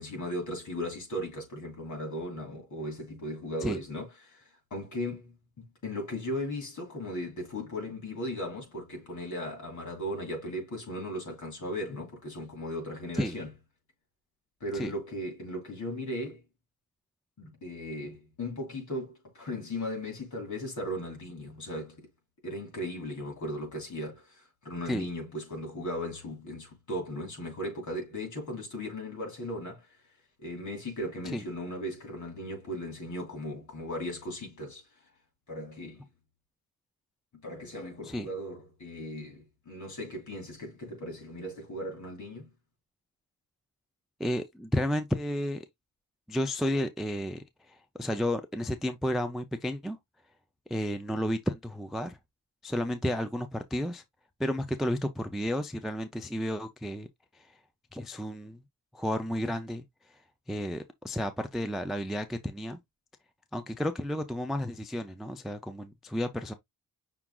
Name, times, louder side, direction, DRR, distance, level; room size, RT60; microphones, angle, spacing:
voice 1, 0.0-13.5 14.6-16.4 17.4-22.1 22.4-29.9 30.4-34.8 35.5-36.0 37.4-42.5, left 1 dB, 55° left, 2.7 m, -37 dB
voice 2, 44.2-45.7 46.3-50.0 50.7-52.2 52.6-54.0 54.4-57.1 57.3-57.5 57.9-58.6 58.9-59.8 60.5-62.8 63.5-66.5, equal, ahead, 0.3 m, -32 dB
5.9 x 2.4 x 3.7 m
wide cardioid pair, 175°, 37 cm